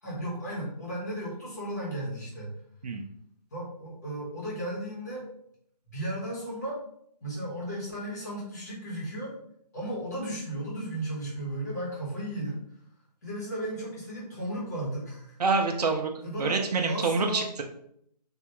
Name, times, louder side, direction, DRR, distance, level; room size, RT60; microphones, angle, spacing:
voice 1, 0.0-2.5 3.5-5.3 5.9-6.8 7.2-9.4 9.7-12.6 13.2-15.4 16.2-16.6 16.9-17.5, right 1 dB, 25° left, -5 dB, 0.9 m, -35 dB
voice 2, 15.4-17.6, right 4 dB, 70° right, 3 dB, 0.5 m, -27 dB
3.4 x 2.3 x 2.8 m, 0.69 s
hypercardioid pair, 170°, 21 cm